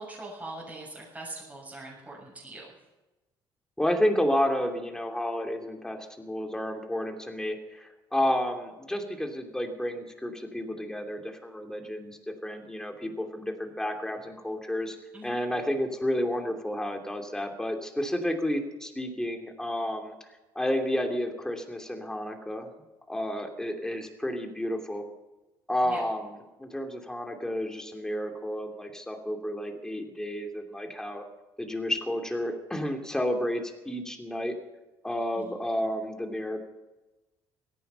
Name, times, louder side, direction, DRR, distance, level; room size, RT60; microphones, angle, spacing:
voice 1, 0.0-2.8 15.1-15.4 25.8-26.0 35.4-35.6, right 2 dB, 15° right, -5 dB, 7.1 m, -42 dB
voice 2, 3.8-15.0 15.2-20.1 20.5-22.7 23.1-25.0 25.7-31.2 31.6-34.5 35.0-36.6, left 1 dB, 5° left, 3 dB, 2.8 m, -31 dB
17.5 x 14.5 x 5.7 m, 1.1 s
cardioid pair, 110°, 9 cm